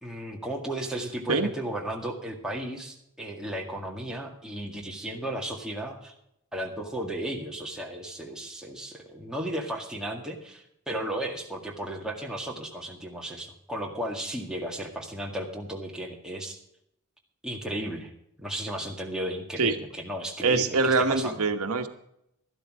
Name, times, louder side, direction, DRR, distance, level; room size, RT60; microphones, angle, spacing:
voice 1, 0.0-6.1 6.5-16.6 17.4-18.1 18.4-21.4, right 1 dB, 5° right, 0 dB, 1.9 m, -34 dB
voice 2, 20.4-21.9, right 4 dB, 85° right, 7 dB, 1.2 m, -24 dB
12.5 x 12.0 x 4.9 m, 0.77 s
head